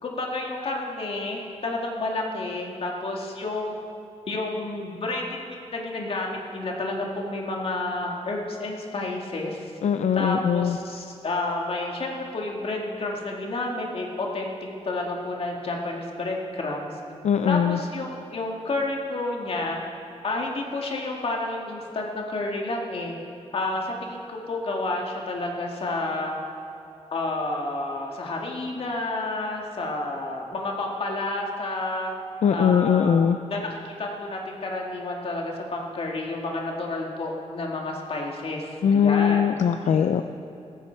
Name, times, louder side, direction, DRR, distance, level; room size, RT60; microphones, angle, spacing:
voice 1, 0.0-3.8 4.3-9.7 10.1-14.5 14.8-16.9 17.5-19.8 20.2-23.2 23.5-26.4 27.1-32.1 32.5-39.5 40.0-40.1, left 2 dB, 55° left, 0 dB, 2.1 m, -30 dB
voice 2, 9.8-10.8 17.2-17.8 32.4-33.4 38.8-40.2, left 8 dB, 75° left, 8 dB, 0.5 m, -21 dB
17.0 x 14.5 x 4.6 m, 2.5 s
wide cardioid pair, 155°, 12 cm